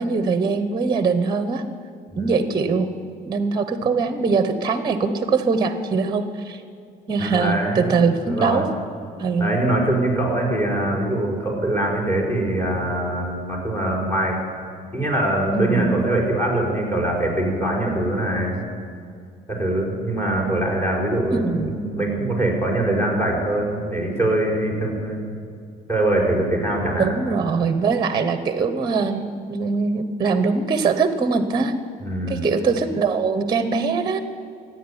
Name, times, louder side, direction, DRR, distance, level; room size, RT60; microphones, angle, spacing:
voice 1, 0.0-1.6 2.1-2.9 3.3-6.6 7.1-8.7 9.2-9.5 15.5-16.0 21.3-21.8 27.0-31.7 32.3-34.2, right 4 dB, 25° right, 10 dB, 1.0 m, -22 dB
voice 2, 7.2-7.9 8.2-8.6 9.4-14.4 14.9-18.6 19.5-25.2 25.9-27.2 32.0-32.5, right 1 dB, 15° left, -1 dB, 5.0 m, -23 dB
15.0 x 9.7 x 9.8 m, 2.3 s
cardioid pair, 110°, 17 cm